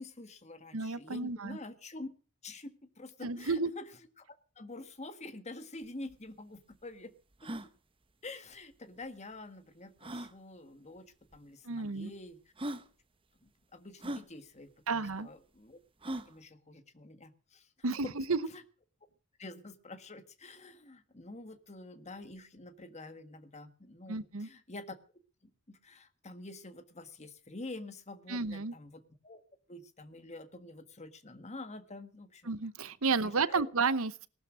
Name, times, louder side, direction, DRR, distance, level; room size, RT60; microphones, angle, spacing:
voice 1, 0.0-2.1 2.4-3.9 4.2-4.3 4.5-7.1 7.4-7.5 8.2-12.4 13.4-15.8 16.3-17.7 18.0-18.1 18.4-18.6 19.4-25.0 25.4-29.4 29.7-32.5 33.2-33.7, left 2 dB, 30° left, 10 dB, 1.5 m, -47 dB
voice 2, 0.7-1.6 3.2-3.7 11.6-12.1 14.9-15.3 17.8-18.4 24.1-24.5 28.3-28.7 32.5-34.3, right 4 dB, 65° right, 16 dB, 0.9 m, -32 dB
sound 1, 5.8-5.9 6.1-6.2 6.7-6.8 7.3-7.7 9.0-9.1 10.0-10.3 11.3-11.4 12.1-12.2 12.6-12.9 14.0-14.3 16.0-16.3, right 1 dB, 25° right, 1.0 m, -39 dB
18.5 x 12.5 x 6.3 m, 0.39 s
head